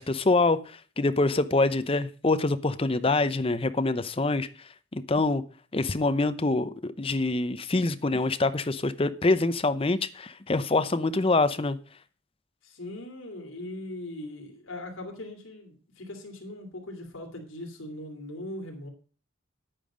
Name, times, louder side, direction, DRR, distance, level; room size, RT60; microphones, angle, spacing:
voice 1, 0.0-4.5 4.9-5.4 5.7-11.8, left 2 dB, 25° left, 0.7 m, -25 dB
voice 2, 12.6-18.9, left 1 dB, 70° left, 2.9 m, -40 dB
10.5 x 9.0 x 5.1 m
head